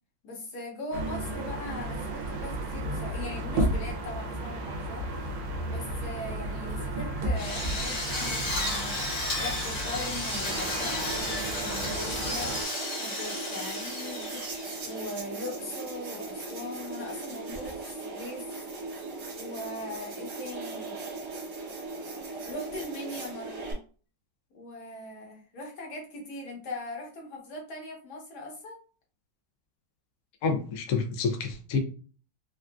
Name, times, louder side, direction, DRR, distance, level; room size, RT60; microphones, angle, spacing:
voice 1, 0.2-5.1 5.7-12.6 13.0-14.5 14.8-18.5 19.4-21.0 22.5-23.8 24.5-28.8, left 2 dB, 60° left, 1.5 m, -40 dB
sound 1, 0.9-12.6, right 1 dB, 85° right, 1.3 m, -33 dB
Drill, 7.4-15.2, left 1 dB, 40° left, 0.8 m, -33 dB
sound 2, 10.5-23.7, right 3 dB, 65° right, 1.5 m, -38 dB
voice 2, 30.4-31.8, left 5 dB, 80° left, 0.7 m, -28 dB
3.8 x 2.4 x 2.2 m
omnidirectional pair, 2.0 m